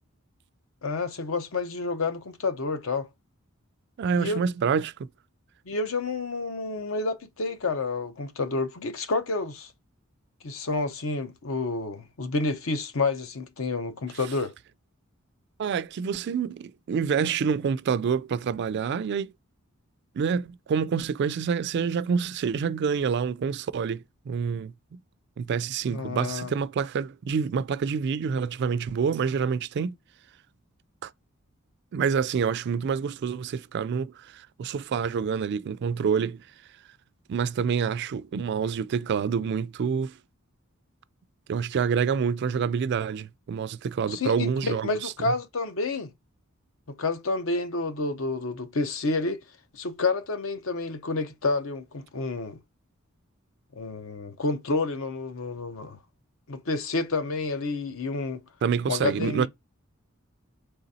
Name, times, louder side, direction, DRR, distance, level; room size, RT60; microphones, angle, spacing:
voice 1, 0.8-3.1 4.2-4.4 5.7-9.7 10.4-14.5 25.9-26.5 44.1-46.1 46.9-49.4 49.7-52.6 53.8-56.0 56.5-58.4 58.9-59.5, left 3 dB, 65° left, 0.7 m, -29 dB
voice 2, 4.0-5.1 15.6-19.3 20.1-25.0 25.4-29.9 31.0-31.1 31.9-36.4 37.3-40.2 41.5-45.3 58.6-59.5, right 6 dB, 55° right, 0.3 m, -27 dB
4.0 x 3.3 x 4.0 m
head